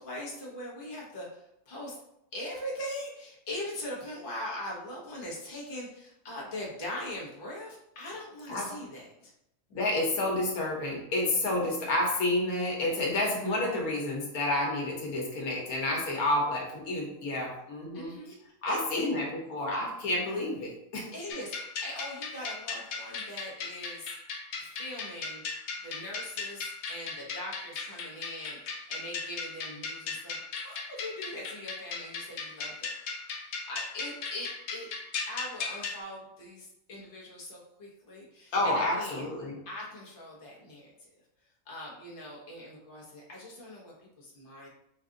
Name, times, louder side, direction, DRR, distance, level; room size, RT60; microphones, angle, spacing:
voice 1, 0.0-2.0 2.3-9.3 17.9-18.4 18.7-19.1 21.1-24.2 24.6-25.4 25.8-32.9 33.7-34.9 35.3-39.3 39.6-40.9 41.7-44.7, left 1 dB, 40° left, -4 dB, 1.2 m, -41 dB
voice 2, 9.7-18.1 18.6-21.1 38.5-39.6, left 1 dB, 85° left, -1 dB, 1.5 m, -30 dB
sound 1, 21.3-36.0, left 4 dB, 60° left, 0.8 m, -37 dB
4.4 x 2.5 x 3.7 m, 0.81 s
omnidirectional pair, 1.5 m